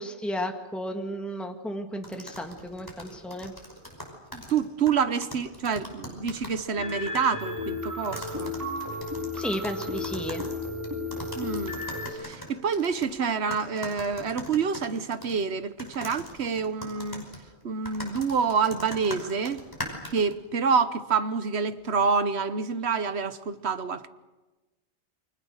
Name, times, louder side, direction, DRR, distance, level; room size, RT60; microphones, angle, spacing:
voice 1, 0.0-3.5 9.3-10.4, equal, ahead, 1.9 m, -33 dB
sound 1, 2.0-6.6 6.9-7.3 8.0-13.1 13.5-15.4 15.8-20.3, equal, 20° left, 5.3 m, -41 dB
voice 2, 4.3-8.5 11.3-11.8 12.1-17.3 17.6-19.6 20.1-24.1, right 5 dB, 65° right, 1.3 m, -27 dB
sound 2, 6.8-12.1, left 2 dB, 15° right, 4.7 m, -33 dB
29.5 x 24.5 x 6.6 m
omnidirectional pair, 1.2 m